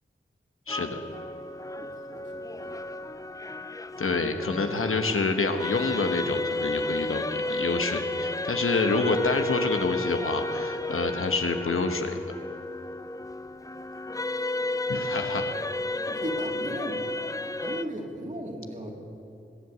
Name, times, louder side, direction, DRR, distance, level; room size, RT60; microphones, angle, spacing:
voice 1, 0.7-1.0 4.0-12.2 14.9-15.5, left 3 dB, 85° left, 5 dB, 1.2 m, -27 dB
sound 1, 0.7-17.8, left 2 dB, 15° left, 0.5 m, -32 dB
voice 2, 1.8-2.8 15.9-17.0 17.6-18.9, right 1 dB, 35° right, -1 dB, 3.1 m, -37 dB
21.0 x 8.0 x 8.2 m, 2.8 s
cardioid pair, 40°, 21 cm